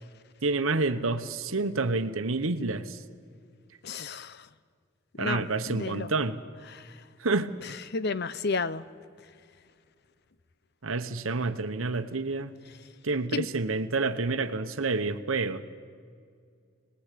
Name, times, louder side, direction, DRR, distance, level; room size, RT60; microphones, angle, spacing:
voice 1, 0.4-3.0 5.2-6.4 7.2-7.8 10.8-12.5 13.0-15.6, right 3 dB, 80° right, 9 dB, 1.0 m, -29 dB
voice 2, 3.8-4.5 5.2-6.1 6.7-6.9 7.9-8.8 13.3-13.5, left 4 dB, 55° left, 15 dB, 0.7 m, -32 dB
25.5 x 20.0 x 8.4 m, 2.2 s
head